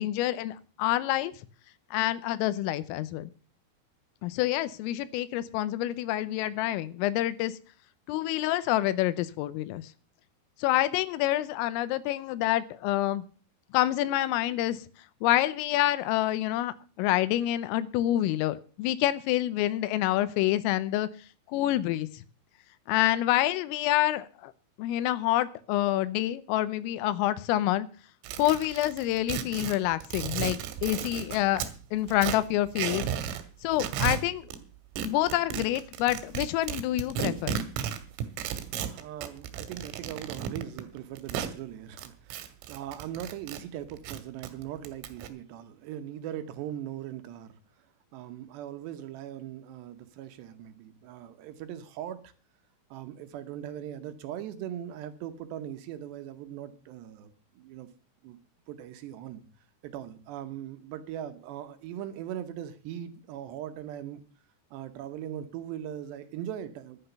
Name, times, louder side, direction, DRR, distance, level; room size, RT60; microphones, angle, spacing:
voice 1, 0.0-1.3 1.9-3.3 4.2-7.5 8.1-9.9 10.6-13.3 13.7-14.8 15.2-21.1 21.5-22.2 22.9-24.5 24.8-27.9 28.4-33.0 33.6-34.5 35.0-37.5, left 14 dB, 90° left, 15 dB, 3.5 m, -27 dB
sound 1, 28.2-31.7 32.1-33.4 33.7-34.6 35.0-41.5 42.0-43.6 43.9-45.3, right 9 dB, 90° right, 3.9 m, -34 dB
voice 2, 38.9-47.6 48.1-52.3 52.9-57.9 58.2-58.4 58.7-59.4 59.8-64.2 64.7-67.1, right 11 dB, 75° right, 9 dB, 2.8 m, -40 dB
11.0 x 10.0 x 6.8 m, 0.39 s
omnidirectional pair, 5.8 m